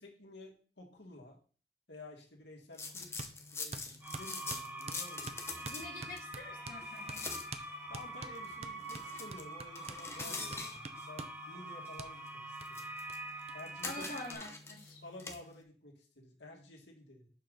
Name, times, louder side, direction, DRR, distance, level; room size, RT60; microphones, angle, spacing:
voice 1, 0.0-1.4 1.9-5.4 7.9-12.4 12.7-12.9 13.5-14.0 15.0-17.3, left 2 dB, 80° left, -1 dB, 2.0 m, -52 dB
sound 1, 2.7-15.6, left 3 dB, 15° left, 0.7 m, -46 dB
sound 2, 3.2-3.3 3.7-6.8 7.1-7.2 7.5-7.7 7.9-11.4 12.0-12.1 12.6-12.7 13.1-13.2 13.5-13.6 13.8-14.5, right 4 dB, 35° right, 0.5 m, -46 dB
sound 3, 4.0-14.3, right 1 dB, 10° right, 1.4 m, -45 dB
voice 2, 5.6-7.3 13.8-15.0, left 2 dB, 50° left, -2 dB, 1.8 m, -46 dB
6.7 x 3.9 x 6.3 m, 0.41 s
head